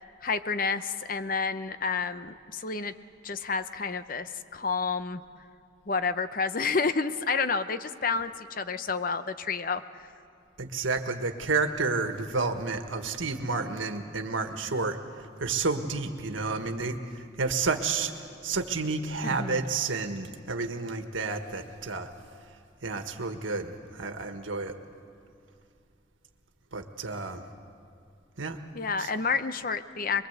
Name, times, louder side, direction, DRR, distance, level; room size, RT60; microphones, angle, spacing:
voice 1, 0.2-2.9 3.2-5.2 5.9-10.1 19.3-19.7 28.7-30.3, left 4 dB, 45° left, 11 dB, 0.8 m, -30 dB
voice 2, 10.6-15.0 15.4-18.1 18.4-22.1 22.8-24.7 26.7-27.4 28.4-28.6 29.0-29.1, right 4 dB, 90° right, 7 dB, 1.6 m, -30 dB
23.5 x 22.5 x 8.1 m, 2.5 s
head